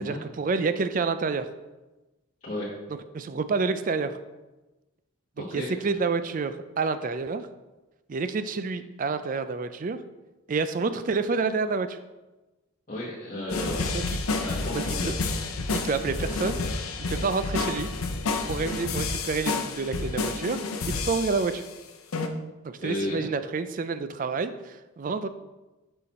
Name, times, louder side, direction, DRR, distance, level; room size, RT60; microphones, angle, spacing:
voice 1, 0.0-1.5 2.9-4.2 5.4-7.4 8.1-10.0 10.5-12.0 13.9-14.2 14.9-15.1 15.7-16.6 17.1-17.9 18.5-21.6 22.8-25.3, right 4 dB, 40° right, 11 dB, 0.4 m, -28 dB
voice 2, 5.4-5.7 12.9-14.0 14.3-15.2 22.8-23.3, left 1 dB, 35° left, -8 dB, 1.3 m, -33 dB
sound 1, 13.5-21.7 22.1-22.3, left 3 dB, 85° left, 0.7 m, -30 dB
6.6 x 5.7 x 4.2 m, 1.1 s
head